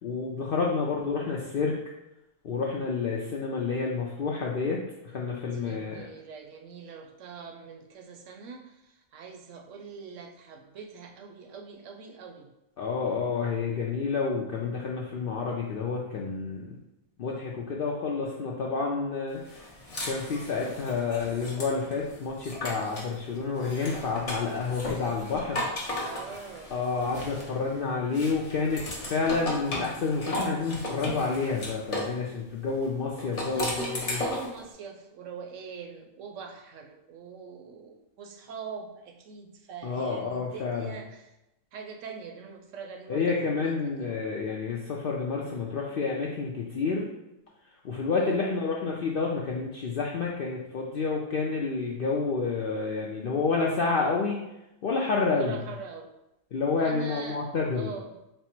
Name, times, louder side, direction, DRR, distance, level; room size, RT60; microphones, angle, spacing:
voice 1, 0.0-1.8 2.4-6.1 12.8-16.8 17.2-19.6 20.0-25.6 26.7-34.2 39.8-40.9 43.1-47.1 47.8-54.4 54.8-55.6 56.5-57.9, left 4 dB, 70° left, -2 dB, 0.5 m, -29 dB
voice 2, 5.5-12.5 25.9-26.7 33.5-41.4 41.7-43.3 43.6-44.1 48.2-48.5 55.3-56.1 56.8-57.5 57.7-58.2, right 5 dB, 70° right, 3 dB, 0.9 m, -43 dB
sound 1, 19.5-23.1 23.6-27.7 28.1-32.2 33.2-34.6, left 1 dB, 35° left, 0.7 m, -35 dB
4.3 x 2.0 x 4.3 m, 0.92 s
omnidirectional pair, 1.4 m